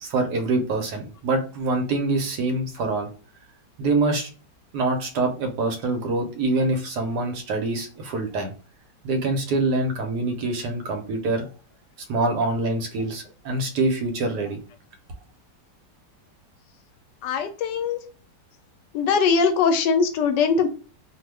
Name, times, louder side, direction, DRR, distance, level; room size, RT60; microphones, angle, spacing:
voice 1, 0.0-3.1 3.8-4.3 4.7-8.5 9.0-11.5 12.1-14.6, right 2 dB, 75° right, 5 dB, 1.2 m, -25 dB
voice 2, 17.2-18.0 18.9-20.7, left 5 dB, 80° left, 7 dB, 1.2 m, -21 dB
2.9 x 2.1 x 3.2 m, 0.38 s
omnidirectional pair, 1.9 m